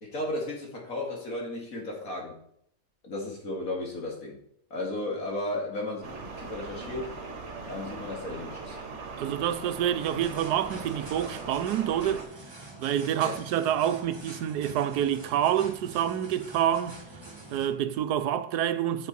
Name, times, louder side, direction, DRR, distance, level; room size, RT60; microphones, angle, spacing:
voice 1, 0.0-2.3 3.0-4.4 4.7-7.1 7.6-8.8 13.2-13.4, left 1 dB, 60° left, 2.8 m, -34 dB
sound 1, 6.0-12.2, right 4 dB, 50° right, 1.4 m, -40 dB
voice 2, 9.2-12.3 12.8-17.0 17.5-19.1, right 10 dB, 85° right, 1.2 m, -27 dB
sound 2, 10.0-17.7, right 2 dB, 15° right, 1.6 m, -46 dB
8.5 x 7.5 x 4.2 m
omnidirectional pair, 1.7 m